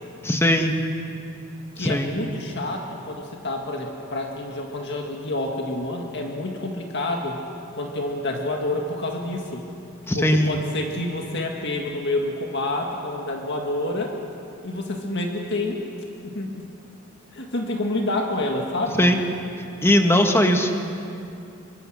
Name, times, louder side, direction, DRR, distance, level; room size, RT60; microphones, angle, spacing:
voice 1, 0.2-0.8 1.8-2.1 10.1-10.6 18.9-19.2 19.8-20.7, equal, 10° left, 4 dB, 1.6 m, -19 dB
voice 2, 1.8-7.4 7.7-9.7 10.1-14.1 14.6-15.9 16.2-16.7 17.3-19.1, left 2 dB, 55° left, 1 dB, 1.9 m, -28 dB
25.0 x 23.5 x 6.4 m, 2.6 s
head